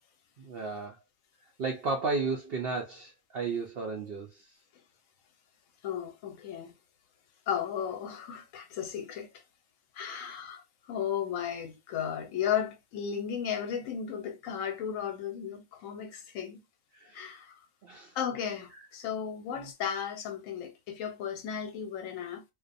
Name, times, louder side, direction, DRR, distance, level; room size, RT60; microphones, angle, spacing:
voice 1, 0.4-1.0 1.6-4.5 10.0-10.3 16.9-17.3 17.8-18.2 19.5-19.7, right 4 dB, 75° right, 0.5 m, -34 dB
voice 2, 5.8-6.7 7.5-9.4 9.9-16.6 17.1-17.5 18.2-22.4, left 8 dB, 65° left, 0.9 m, -35 dB
2.5 x 2.2 x 2.5 m
omnidirectional pair, 1.6 m